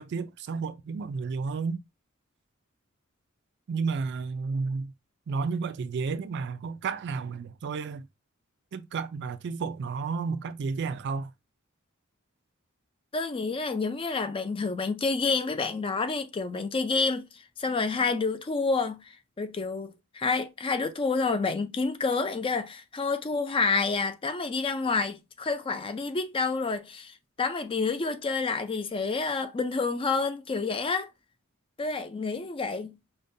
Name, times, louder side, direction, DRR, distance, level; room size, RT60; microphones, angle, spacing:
voice 1, 0.0-1.8 3.7-4.9 5.3-8.1 8.7-11.3, right 4 dB, 55° right, 0.3 m, -32 dB
voice 2, 13.1-31.1 31.8-33.0, left 4 dB, 25° left, 0.4 m, -29 dB
5.1 x 2.2 x 2.6 m
head